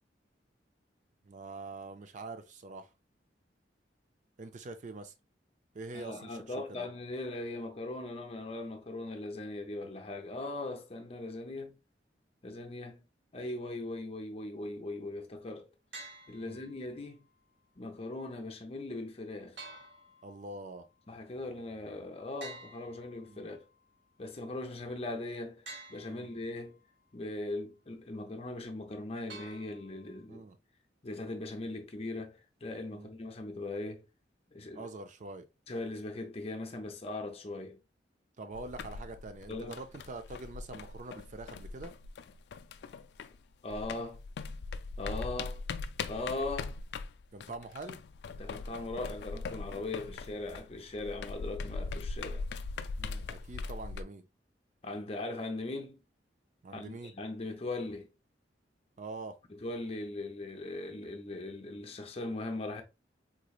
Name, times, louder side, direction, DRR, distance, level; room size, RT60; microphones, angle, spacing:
voice 1, 1.2-2.9 4.4-5.1 5.7-6.9 16.4-16.6 20.2-20.8 23.3-23.5 26.1-26.3 30.3-30.6 32.9-33.1 34.7-35.5 38.4-41.9 47.3-48.0 53.0-54.3 56.6-57.1 59.0-59.3, right 2 dB, 40° right, 0.4 m, -44 dB
voice 2, 5.9-11.8 12.4-13.0 13.3-15.7 16.3-17.2 17.8-19.6 21.1-23.7 24.2-25.6 25.9-26.8 27.1-30.4 31.0-34.1 34.5-34.9 35.7-37.8 39.5-39.8 43.6-44.2 45.0-45.6 46.1-46.8 48.4-52.4 54.8-56.0 56.7-58.1 59.5-62.8, left 2 dB, 35° left, 0.7 m, -39 dB
sound 1, 15.9-16.9 19.6-20.7 22.4-23.6 25.7-26.6 29.3-30.2, right 2 dB, 85° right, 1.5 m, -50 dB
sound 2, 38.5-43.4 43.7-54.0, left 4 dB, 60° left, 0.3 m, -41 dB
3.9 x 3.1 x 2.3 m
head